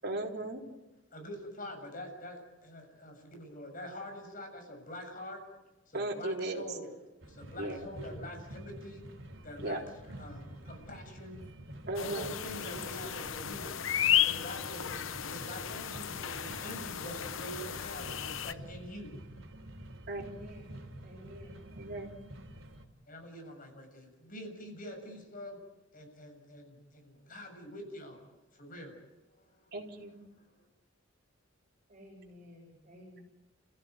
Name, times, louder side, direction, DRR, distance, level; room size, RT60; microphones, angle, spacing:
voice 1, 0.0-0.6 5.9-6.6 7.6-7.9 9.6-9.8 11.9-12.3 20.1-20.3 21.8-22.1 29.7-30.2, right 2 dB, 55° right, 0 dB, 3.9 m, -36 dB
voice 2, 1.1-5.4 5.9-6.9 7.2-9.0 9.4-9.8 10.2-11.7 12.0-13.9 14.2-18.2 18.4-19.1 21.5-21.6 23.1-25.6 25.9-29.0 29.4-29.7 30.3-30.7, equal, 45° left, 3 dB, 7.4 m, -45 dB
sound 1, 7.2-22.9, right 1 dB, 90° right, 3.3 m, -48 dB
sound 2, 12.0-18.5, left 10 dB, 90° left, 0.8 m, -34 dB
voice 3, 20.2-20.6 21.0-21.5 31.9-33.2, equal, 35° right, -1 dB, 6.5 m, -52 dB
30.0 x 15.5 x 9.6 m, 1.1 s
head